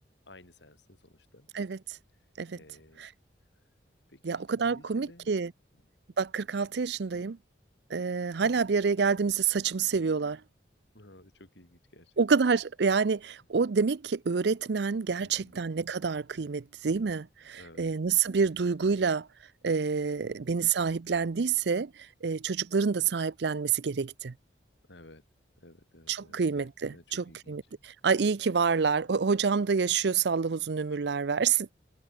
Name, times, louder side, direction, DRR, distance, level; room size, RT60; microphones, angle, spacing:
voice 1, 0.3-1.5 2.6-3.1 3.6-3.7 4.1-5.3 7.1-7.3 10.9-12.1 15.2-15.6 17.4-17.9 24.9-25.2 25.6-27.6, left 1 dB, 75° left, 6.0 m, -55 dB
voice 2, 4.2-5.5 6.2-7.4 7.9-10.4 12.2-19.3 19.6-21.9 22.2-24.3 26.1-27.6 28.0-31.7, right 5 dB, 70° right, 0.5 m, -27 dB
head